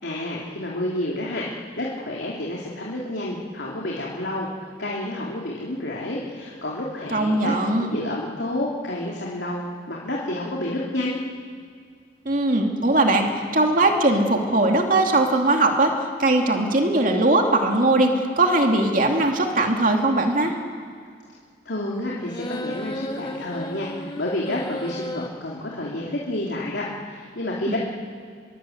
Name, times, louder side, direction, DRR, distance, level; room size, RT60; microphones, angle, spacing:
voice 1, 0.0-7.5 7.8-11.2 21.6-27.8, left 1 dB, 80° left, -4 dB, 3.1 m, -29 dB
voice 2, 7.1-7.9 12.2-15.9 16.2-20.5 27.7-27.8, right 2 dB, 45° right, 2 dB, 2.6 m, -20 dB
sound 1, 22.2-25.3, left 1 dB, 25° left, 1.9 m, -34 dB
26.5 x 22.0 x 8.0 m, 2.1 s
head